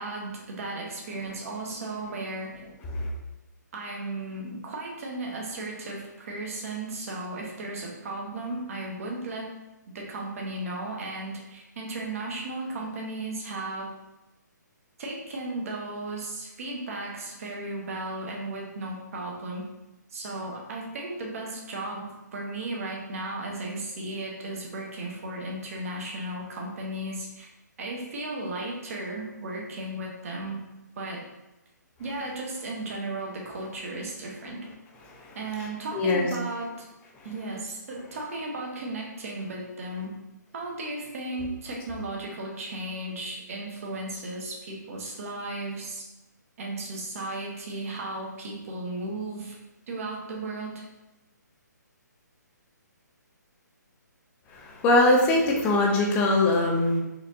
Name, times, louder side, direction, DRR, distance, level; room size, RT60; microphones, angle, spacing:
voice 1, 0.0-2.6 3.7-9.5 9.9-13.9 15.0-19.6 20.1-27.5 27.8-30.6 31.0-31.2 32.0-34.7 35.3-36.9 37.2-40.2 40.5-46.1 46.6-49.6 49.9-50.8, right 2 dB, 50° right, -1 dB, 0.9 m, -35 dB
voice 2, 35.9-36.3 54.5-57.0, left 2 dB, 15° left, -1 dB, 0.4 m, -22 dB
4.2 x 2.6 x 2.6 m, 0.99 s
hypercardioid pair, 150°, 10 cm